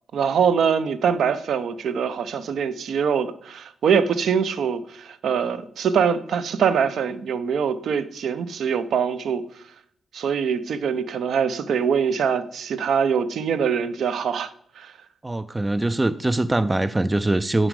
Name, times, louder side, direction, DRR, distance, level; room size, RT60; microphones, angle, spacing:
voice 1, 0.1-9.4 10.1-14.5 14.8-14.9, right 7 dB, 70° right, 0.6 m, -23 dB
voice 2, 15.2-17.7, right 2 dB, 15° right, 0.3 m, -22 dB
7.5 x 5.1 x 4.7 m
cardioid pair, 85°, 0 cm